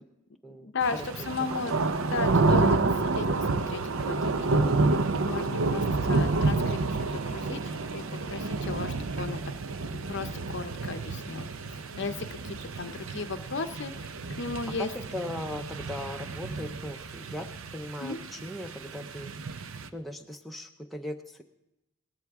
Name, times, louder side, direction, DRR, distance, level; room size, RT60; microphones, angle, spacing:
voice 1, 0.6-1.7 2.1-3.3 3.7-9.4 9.9-14.1 14.4-14.9 18.0-18.2, left 4 dB, 50° left, 9 dB, 0.6 m, -35 dB
sound 1, 0.8-19.9, right 3 dB, 65° right, 0.6 m, -29 dB
voice 2, 1.2-1.6 14.8-19.3 19.9-21.4, left 1 dB, ahead, 2 dB, 0.5 m, -39 dB
18.0 x 13.0 x 3.6 m, 0.92 s
head